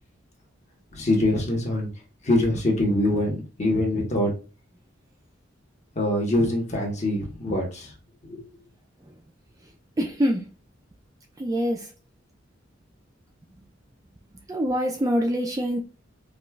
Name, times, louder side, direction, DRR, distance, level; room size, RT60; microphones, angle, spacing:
voice 1, 0.9-1.9 2.2-4.3 5.9-7.9 8.2-8.4, left 1 dB, 35° left, 1.1 m, -24 dB
voice 2, 10.0-10.5 11.4-11.9 14.3-15.8, equal, 20° right, 0.3 m, -25 dB
5.0 x 2.3 x 2.3 m
head